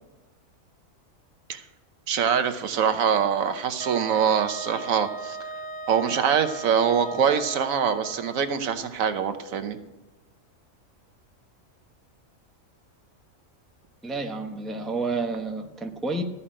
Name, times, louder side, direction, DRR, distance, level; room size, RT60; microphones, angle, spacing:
voice 1, 2.1-5.4 5.9-9.8, right 7 dB, 80° right, 9 dB, 1.3 m, -24 dB
Wind instrument woodwind instrument, 3.8-8.5, right 3 dB, 50° right, 1.0 m, -37 dB
voice 2, 14.0-16.2, right 3 dB, ahead, 3 dB, 0.7 m, -30 dB
14.0 x 5.6 x 8.8 m, 1.1 s
omnidirectional pair, 1.4 m